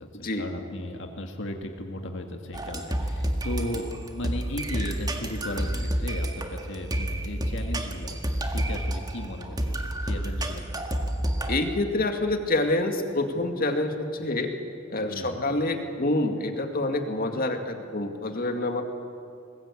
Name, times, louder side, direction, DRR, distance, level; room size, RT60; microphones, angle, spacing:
voice 1, 0.0-10.8 15.0-15.5, left 1 dB, 65° left, 4 dB, 1.9 m, -36 dB
sound 1, 2.5-11.6, right 1 dB, 20° right, 1.8 m, -29 dB
voice 2, 11.5-14.5 14.9-18.8, left 2 dB, 45° left, 5 dB, 2.3 m, -27 dB
24.0 x 20.5 x 8.4 m, 2.6 s
head